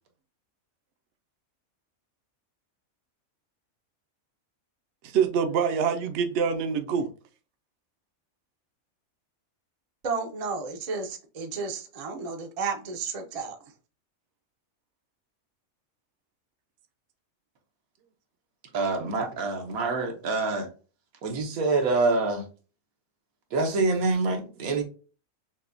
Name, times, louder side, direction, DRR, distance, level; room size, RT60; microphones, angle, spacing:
voice 1, 5.0-7.1, right 6 dB, 65° right, 0.8 m, -25 dB
voice 2, 10.0-13.6, right 4 dB, 40° right, 0.5 m, -32 dB
voice 3, 18.7-20.7 21.2-22.4 23.5-24.8, right 3 dB, 80° right, 1.3 m, -26 dB
6.0 x 2.2 x 2.5 m
omnidirectional pair, 1.5 m